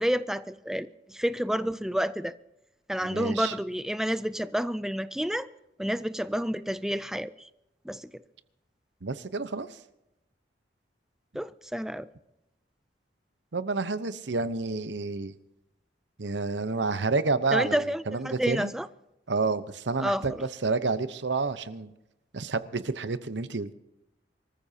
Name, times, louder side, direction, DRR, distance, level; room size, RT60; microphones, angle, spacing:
voice 1, 0.0-2.4 2.9-5.5 5.8-7.5 7.9-8.2 11.3-12.1 17.5-18.9 20.0-20.5, equal, 5° right, 0.4 m, -29 dB
voice 2, 3.0-3.5 9.0-9.8 13.5-15.4 16.2-18.7 19.3-21.9 22.3-23.7, right 3 dB, 85° right, 0.9 m, -29 dB
25.0 x 14.0 x 2.8 m
head